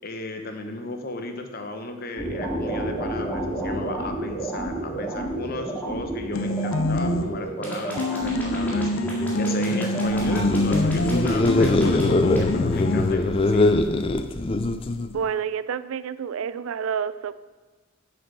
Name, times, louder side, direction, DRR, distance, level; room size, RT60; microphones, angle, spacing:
voice 1, 0.0-13.8, left 2 dB, 45° left, 5 dB, 0.9 m, -34 dB
sound 1, 2.2-12.4, right 1 dB, 10° left, 1.9 m, -30 dB
sound 2, 6.3-7.5 8.0-13.2, left 1 dB, 70° left, 0.6 m, -26 dB
sound 3, 10.1-15.2, left 2 dB, 25° left, 0.4 m, -22 dB
voice 2, 15.1-17.3, right 7 dB, 80° right, 15 dB, 0.4 m, -28 dB
7.7 x 6.0 x 6.1 m, 1.3 s
head